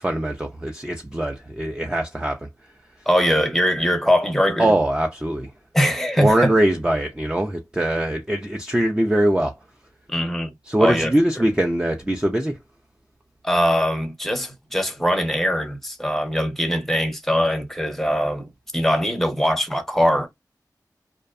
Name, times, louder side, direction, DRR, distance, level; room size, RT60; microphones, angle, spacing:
voice 1, 0.0-2.5 4.6-5.5 6.2-9.5 10.7-12.6, right 1 dB, 10° right, 0.4 m, -22 dB
voice 2, 3.1-4.7 5.7-6.5 10.1-10.5 10.8-11.1 11.4-11.5 13.4-20.3, equal, 5° left, 0.8 m, -21 dB
2.6 x 2.1 x 2.4 m
wide cardioid pair, 55°, 7 cm